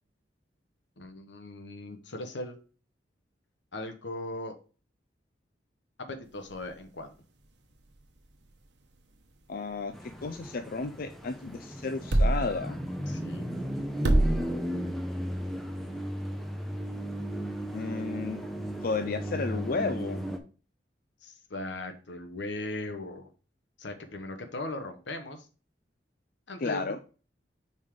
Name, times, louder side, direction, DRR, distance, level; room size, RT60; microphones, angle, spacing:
voice 1, 1.0-2.6 3.7-4.5 6.1-7.1 13.1-13.5 21.2-23.3 23.8-25.5 26.5-27.0, left 2 dB, 80° left, 6 dB, 1.1 m, -38 dB
sound 1, 6.2-19.0, right 1 dB, 70° right, 1.0 m, -34 dB
voice 2, 9.5-12.8 17.7-18.4 18.8-20.2 26.6-27.0, left 4 dB, 55° left, 8 dB, 0.5 m, -33 dB
sound 2, 9.9-20.4, equal, ahead, 0.8 m, -35 dB
5.4 x 4.9 x 3.7 m, 0.36 s
head